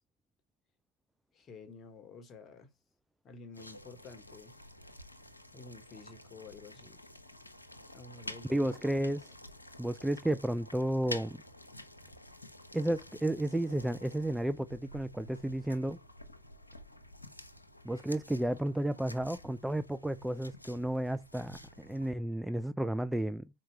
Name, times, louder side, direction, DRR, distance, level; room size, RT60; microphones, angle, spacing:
voice 1, 1.3-2.7 3.2-4.6 5.5-7.0 7.9-8.7, left 4 dB, 25° left, 1.3 m, -51 dB
sound 1, 3.5-22.1, left 1 dB, 85° left, 0.9 m, -50 dB
voice 2, 8.5-9.3 9.8-11.4 12.7-16.0 17.8-23.5, right 1 dB, 5° right, 0.3 m, -32 dB
5.8 x 4.4 x 4.3 m
figure-of-eight pair, 90°, 0 cm